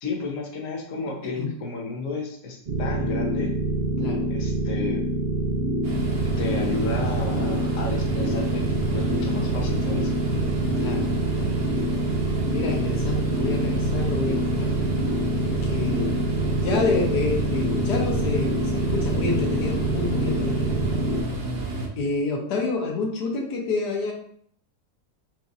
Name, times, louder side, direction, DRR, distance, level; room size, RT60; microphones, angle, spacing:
voice 1, 0.0-3.5 4.3-5.0 6.4-8.7 8.9-10.1, left 3 dB, 60° left, -1 dB, 1.1 m, -32 dB
voice 2, 1.0-1.5 4.0-4.3 10.8-11.6 12.5-14.7 15.4-16.3 16.6-20.8 22.0-24.1, left 4 dB, 80° left, 0 dB, 1.4 m, -28 dB
sound 1, 2.7-21.2, right 1 dB, 65° right, 0.4 m, -26 dB
sound 2, 5.8-21.9, right 2 dB, 50° right, 0.8 m, -30 dB
5.9 x 2.4 x 2.6 m, 0.62 s
omnidirectional pair, 1.7 m